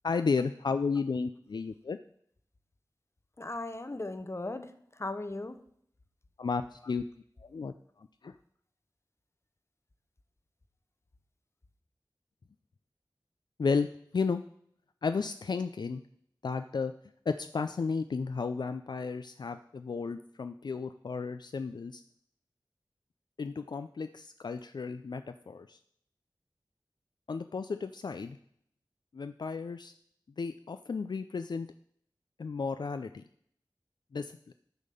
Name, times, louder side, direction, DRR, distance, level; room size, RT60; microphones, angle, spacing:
voice 1, 0.0-2.0 6.4-7.0 7.4-8.4 13.6-13.9 14.1-14.4 15.0-16.0 16.4-16.9 17.3-22.0 23.4-25.8 27.3-28.4 29.1-29.9 30.4-31.7 32.4-33.2 34.1-34.5, left 4 dB, 70° left, 9 dB, 0.3 m, -33 dB
voice 2, 3.4-5.6, left 2 dB, 35° left, 10 dB, 0.8 m, -37 dB
9.9 x 3.6 x 6.8 m, 0.66 s
wide cardioid pair, 40°, 8 cm